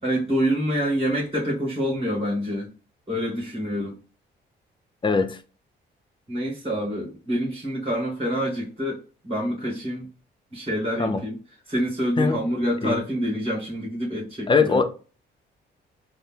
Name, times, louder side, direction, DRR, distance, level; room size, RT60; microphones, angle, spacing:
voice 1, 0.0-2.7 3.1-3.9 6.3-10.1 10.5-11.4 11.7-14.8, equal, 30° right, 2.0 m, -26 dB
voice 2, 5.0-5.4 11.0-11.2 12.2-12.4 12.8-13.0 14.5-14.8, left 4 dB, 25° left, 0.5 m, -21 dB
4.0 x 2.0 x 3.6 m
cardioid pair, 90°, 20 cm